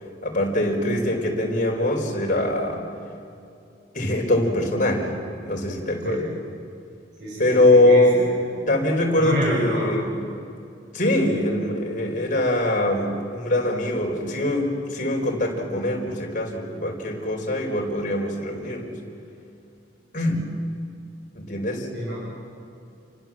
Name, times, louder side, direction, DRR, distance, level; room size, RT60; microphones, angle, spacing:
voice 1, 0.2-2.8 3.9-5.1 5.4-6.2 7.4-8.2 8.7-10.4 10.9-18.9 20.1-20.5 21.3-21.9, left 1 dB, 45° left, 0 dB, 4.8 m, -22 dB
voice 2, 7.2-8.2 9.1-9.9 21.9-22.1, equal, 65° right, -6 dB, 7.2 m, -29 dB
29.5 x 25.0 x 7.7 m, 2.6 s
head